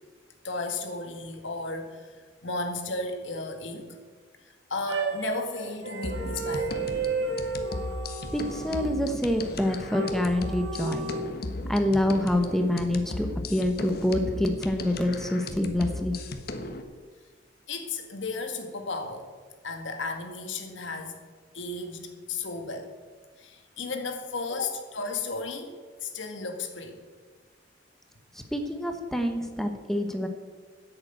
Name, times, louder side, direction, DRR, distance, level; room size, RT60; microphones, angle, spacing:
voice 1, 0.4-2.2 2.4-4.0 4.7-6.8 17.7-19.3 19.6-21.2 21.5-22.9 23.4-25.8 26.0-26.9, left 3 dB, 85° left, 4 dB, 1.9 m, -34 dB
sound 1, 4.9-9.2 9.9-11.2, right 3 dB, 65° right, 1.9 m, -32 dB
sound 2, 6.0-16.8, left 2 dB, 55° left, 1.2 m, -36 dB
voice 2, 8.3-11.1 11.7-16.2 28.3-30.3, left 1 dB, ahead, 5 dB, 1.0 m, -26 dB
11.0 x 8.0 x 8.9 m, 1.5 s
head